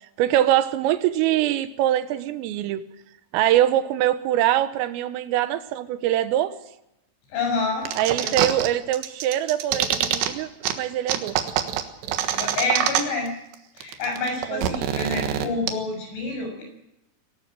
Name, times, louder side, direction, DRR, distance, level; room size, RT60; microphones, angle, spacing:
voice 1, 0.2-2.8 3.3-6.5 8.0-11.4 14.5-14.6, right 12 dB, 85° right, 12 dB, 3.7 m, -23 dB
voice 2, 7.3-7.9 8.2-8.3 12.3-13.3 13.8-16.6, left 3 dB, 65° left, 3 dB, 9.1 m, -28 dB
sound 1, 7.9-8.7 8.9-10.3 10.6-10.7 11.1-13.3 13.5-13.6 13.8-15.7, right 10 dB, 65° right, 3.3 m, -24 dB
22.5 x 18.0 x 7.6 m, 0.86 s
omnidirectional pair, 5.8 m